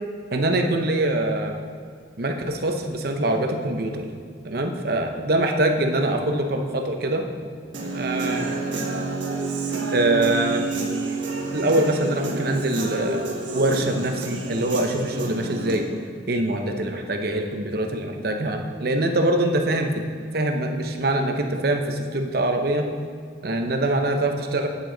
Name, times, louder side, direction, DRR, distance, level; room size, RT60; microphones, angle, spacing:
voice 1, 0.3-1.5 2.2-4.1 4.4-7.2 7.9-8.5 9.9-10.6 11.5-13.3 13.5-15.9 16.3-20.1 20.3-22.9 23.4-24.7, right 1 dB, 55° right, 4 dB, 0.8 m, -24 dB
Human voice / Guitar, 7.7-15.8, right 3 dB, 80° right, 1.3 m, -29 dB
8.4 x 7.6 x 3.9 m, 2.1 s
head